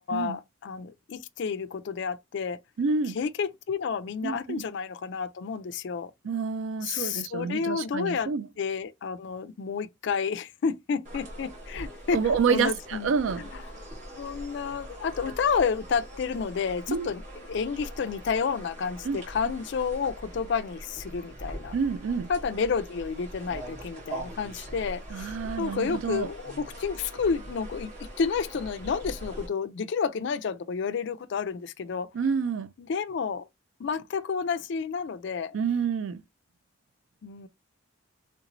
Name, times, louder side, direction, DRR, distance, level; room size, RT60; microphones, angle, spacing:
voice 1, 0.0-2.6 3.1-6.1 6.8-8.3 8.6-13.1 14.2-17.2 17.5-21.8 22.3-32.1 32.8-33.5 33.8-35.6 37.2-37.5, left 5 dB, 55° left, 0.3 m, -30 dB
voice 2, 2.8-3.2 4.2-4.6 6.2-8.5 12.1-13.4 16.9-17.1 19.0-19.2 21.7-22.3 25.1-26.3 32.1-32.7 35.5-36.2, right 5 dB, 65° right, 0.4 m, -28 dB
sound 1, 11.0-29.5, right 1 dB, 35° right, 1.4 m, -42 dB
3.3 x 3.0 x 2.5 m
head